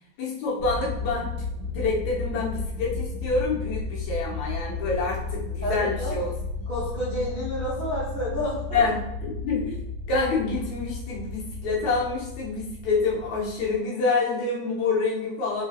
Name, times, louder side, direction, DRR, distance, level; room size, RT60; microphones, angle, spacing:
voice 1, 0.2-1.3 1.7-6.3 8.7-9.8 10.1-15.6, left 4 dB, 75° left, -5 dB, 2.5 m, -27 dB
sound 1, 0.6-13.8, left 3 dB, 60° right, 1.7 m, -33 dB
voice 2, 5.6-6.2 6.7-8.8, equal, 75° right, -10 dB, 0.4 m, -30 dB
4.9 x 3.6 x 2.8 m, 0.84 s
omnidirectional pair, 3.3 m